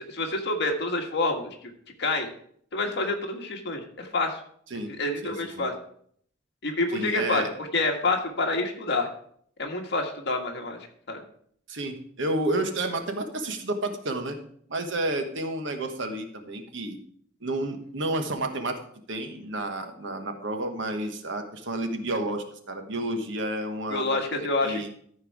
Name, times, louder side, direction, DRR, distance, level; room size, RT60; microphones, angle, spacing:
voice 1, 0.0-1.7 2.0-2.3 2.7-4.4 4.9-5.7 6.6-7.4 7.7-9.1 9.6-10.8 11.1-11.2 23.9-24.8, left 2 dB, 60° left, 3 dB, 1.6 m, -27 dB
voice 2, 5.2-5.7 6.9-7.5 11.7-14.4 14.7-17.0 17.4-18.8 19.1-24.9, right 1 dB, 65° right, 6 dB, 1.2 m, -31 dB
13.5 x 4.6 x 4.7 m, 0.62 s
head